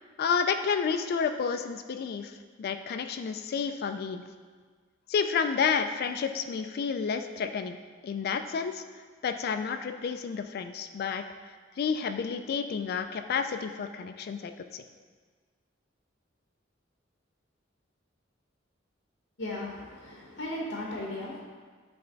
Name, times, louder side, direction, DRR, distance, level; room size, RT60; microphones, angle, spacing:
voice 1, 0.2-4.2 5.1-7.8 8.0-8.8 9.2-11.2 11.8-14.8, left 6 dB, 55° left, 8 dB, 0.3 m, -30 dB
voice 2, 19.4-21.4, left 1 dB, 85° left, -2 dB, 1.0 m, -36 dB
8.7 x 3.4 x 3.9 m, 1.5 s
head